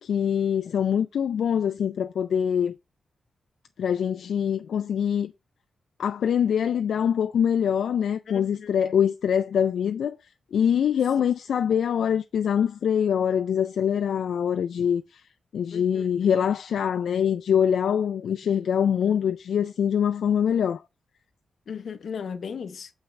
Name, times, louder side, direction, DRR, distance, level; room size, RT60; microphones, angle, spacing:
voice 1, 0.0-2.8 3.8-5.3 6.0-10.2 10.5-15.2 15.5-20.8, left 8 dB, 85° left, 0.3 m, -24 dB
voice 2, 8.3-8.7 15.7-16.1 21.7-22.9, left 6 dB, 65° left, 0.7 m, -36 dB
6.5 x 5.7 x 3.2 m
cardioid pair, 95°, 0 cm